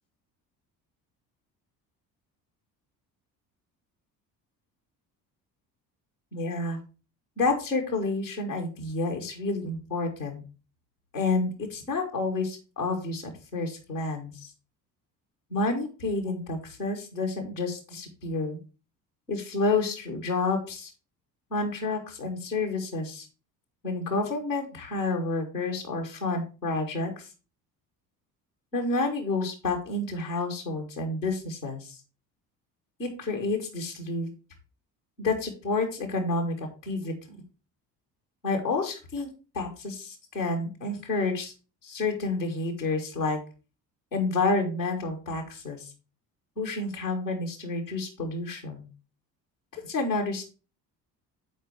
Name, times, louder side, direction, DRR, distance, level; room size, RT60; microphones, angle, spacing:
voice 1, 6.3-6.8 7.4-10.4 11.1-14.5 15.5-18.6 19.3-20.9 21.5-23.3 23.8-27.3 28.7-32.0 33.0-34.3 35.2-37.4 38.4-39.3 39.5-41.5 41.8-43.4 44.1-45.9 46.6-48.9 49.7-50.4, left 3 dB, 90° left, -1 dB, 1.6 m, -29 dB
8.1 x 4.4 x 4.5 m, 0.33 s
figure-of-eight pair, 50°, 49 cm